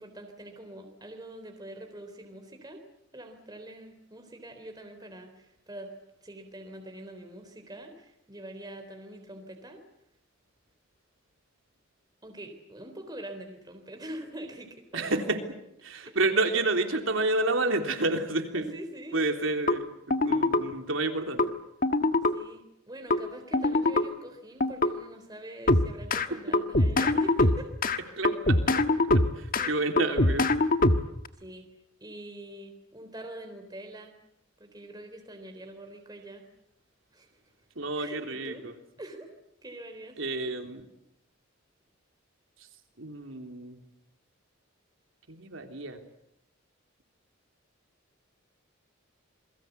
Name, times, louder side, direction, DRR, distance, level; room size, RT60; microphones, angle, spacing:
voice 1, 0.0-2.8 3.1-5.9 6.2-9.8 12.2-15.2 18.5-19.5 22.3-27.7 29.0-29.8 31.4-31.7 32.0-34.1 34.6-36.4 37.1-37.4 38.0-38.7 39.0-39.3 39.6-40.2, right 1 dB, 20° right, 4 dB, 3.7 m, -44 dB
voice 2, 14.9-15.4 15.8-18.7 19.1-21.4 26.3-26.4 28.2-28.8 29.1-29.2 29.7-30.5 37.8-38.7 40.2-40.8 43.0-43.8 45.3-46.0, right 2 dB, 70° right, 5 dB, 3.5 m, -29 dB
sound 1, 19.7-19.8 20.1-20.6 21.4-21.5 21.8-22.3 23.1-23.2 23.5-24.0 24.6-24.9 25.7-26.3 26.5-28.0 28.2-29.7 30.0-31.3, left 2 dB, 45° left, 1.5 m, -23 dB
28.5 x 23.0 x 8.2 m, 0.79 s
head